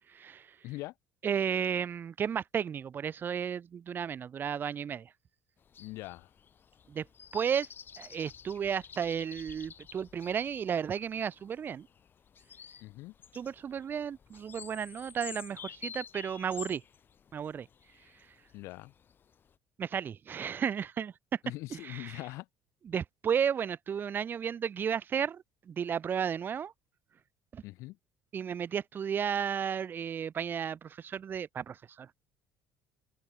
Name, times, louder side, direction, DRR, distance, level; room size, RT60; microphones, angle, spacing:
voice 1, 0.1-0.5 1.2-5.1 6.9-7.1 7.3-7.7 8.0-11.9 13.3-16.8 17.3-17.7 19.8-21.4 21.7-22.2 22.9-26.7 27.5-27.6 28.3-32.1, right 7 dB, 40° right, 1.9 m, -33 dB
voice 2, 0.6-0.9 5.8-6.3 12.8-13.1 18.5-18.9 21.4-22.5 27.6-28.0, left 20 dB, 65° left, 7.6 m, -42 dB
sound 1, 5.6-19.6, left 7 dB, 40° left, 7.7 m, -50 dB
hypercardioid pair, 60°, 5 cm